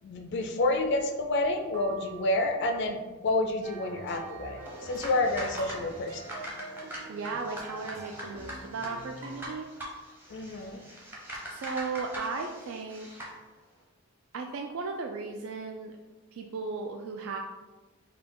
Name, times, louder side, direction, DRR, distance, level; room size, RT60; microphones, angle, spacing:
voice 1, 0.0-3.0 3.2-6.2 10.3-10.8, left 2 dB, 50° left, 5 dB, 0.3 m, -29 dB
sound 1, 1.7-3.0, right 7 dB, 50° right, 0.8 m, -48 dB
sound 2, 3.6-9.4, right 3 dB, 85° right, 0.9 m, -46 dB
sound 3, 4.6-13.4, equal, 10° right, 0.7 m, -42 dB
voice 2, 7.1-9.7 11.5-13.1 14.3-15.9 16.3-17.4, right 4 dB, 65° right, 3 dB, 0.3 m, -36 dB
4.1 x 2.3 x 4.6 m, 1.2 s
head